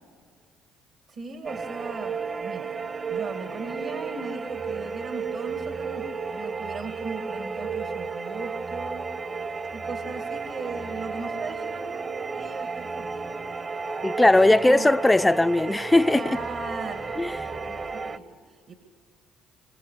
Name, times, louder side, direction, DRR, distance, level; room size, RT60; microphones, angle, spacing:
voice 1, 1.1-2.8 3.1-13.2 13.7-14.9 16.1-18.7, right 4 dB, 60° right, 2.2 m, -39 dB
sound 1, 1.4-18.2, right 4 dB, 35° right, 1.2 m, -33 dB
voice 2, 14.0-16.2 17.2-17.3, left 2 dB, 15° left, 0.6 m, -19 dB
26.0 x 24.5 x 6.7 m
supercardioid pair, 70°, 0 cm